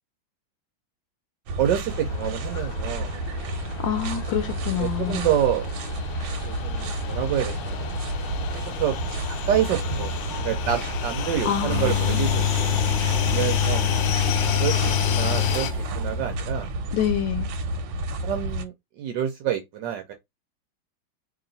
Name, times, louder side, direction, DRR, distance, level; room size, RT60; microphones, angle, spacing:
sound 1, 1.5-18.6, right 1 dB, 90° right, 1.5 m, -30 dB
voice 1, 1.6-3.1 4.8-5.7 6.4-7.9 8.7-8.9 9.3-12.7 13.2-14.1 14.5-15.7 15.9-16.7 18.2-20.1, right 10 dB, 70° right, 1.2 m, -27 dB
sound 2, 1.9-15.7, left 10 dB, 90° left, 1.4 m, -34 dB
voice 2, 3.8-5.3 11.4-12.3 16.9-17.5, left 10 dB, 75° left, 1.3 m, -27 dB
sound 3, 11.7-16.1 16.4-16.5, left 8 dB, 25° right, 1.3 m, -24 dB
3.0 x 2.9 x 3.9 m
omnidirectional pair, 2.2 m